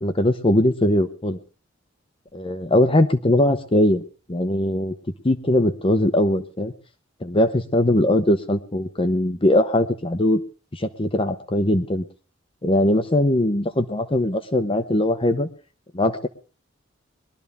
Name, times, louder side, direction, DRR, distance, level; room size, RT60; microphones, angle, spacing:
voice 1, 0.0-1.4 2.3-4.0 4.3-4.9 5.2-6.7 7.2-10.4 10.7-12.0 12.6-15.5 15.9-16.3, left 1 dB, 30° left, 8 dB, 0.9 m, -20 dB
21.5 x 12.5 x 3.5 m, 0.36 s
head